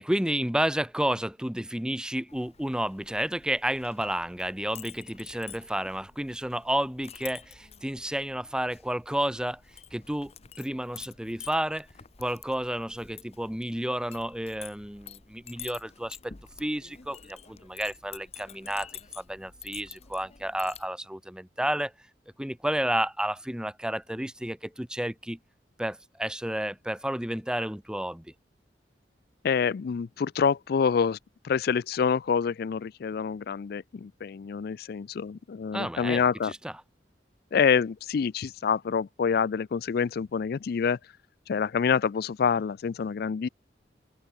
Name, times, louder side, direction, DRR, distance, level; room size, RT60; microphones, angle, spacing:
voice 1, 0.0-9.6 9.9-10.3 10.6-11.9 12.2-16.3 16.6-18.9 19.1-21.9 22.4-25.4 25.8-28.3 35.7-36.7, right 1 dB, 5° right, 0.9 m, -31 dB
Chink clink, 2.3-20.9, left 8 dB, 35° left, 1.0 m, -49 dB
voice 2, 29.4-31.2 31.4-36.5 37.5-41.0 41.5-43.5, left 6 dB, 60° left, 0.4 m, -27 dB
head